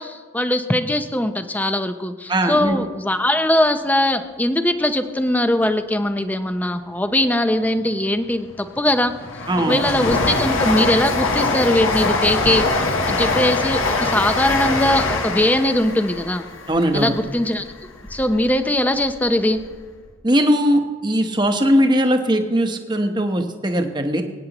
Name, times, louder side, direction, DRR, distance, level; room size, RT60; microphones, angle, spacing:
voice 1, 0.0-9.1 9.7-16.5 16.9-17.6 18.1-19.6, left 1 dB, 10° left, 8 dB, 0.5 m, -20 dB
voice 2, 2.3-2.8 9.5-9.9 16.7-17.1 20.2-24.2, equal, 20° right, 5 dB, 0.9 m, -19 dB
Train, 8.3-18.5 18.9-19.8 20.1-20.2, left 3 dB, 75° left, 1.3 m, -23 dB
25.5 x 9.2 x 3.0 m, 1.5 s
head